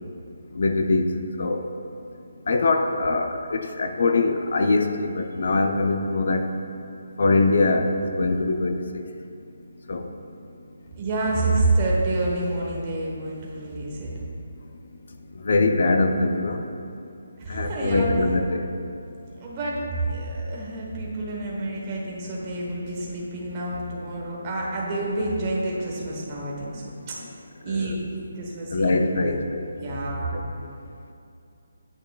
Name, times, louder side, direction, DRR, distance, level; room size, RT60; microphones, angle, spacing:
voice 1, 0.5-1.6 2.5-6.5 7.2-9.0 9.9-10.1 15.4-16.6 17.5-18.7 27.7-28.0 28.7-29.6 29.9-30.0 30.3-30.4, left 3 dB, 55° left, 6 dB, 0.5 m, -23 dB
voice 2, 11.0-14.1 17.4-18.1 19.4-27.4 27.6-28.0 28.3-29.3 29.8-30.3, right 2 dB, 20° right, -4 dB, 1.2 m, -28 dB
8.8 x 8.7 x 2.4 m, 2.5 s
hypercardioid pair, 175°, 0 cm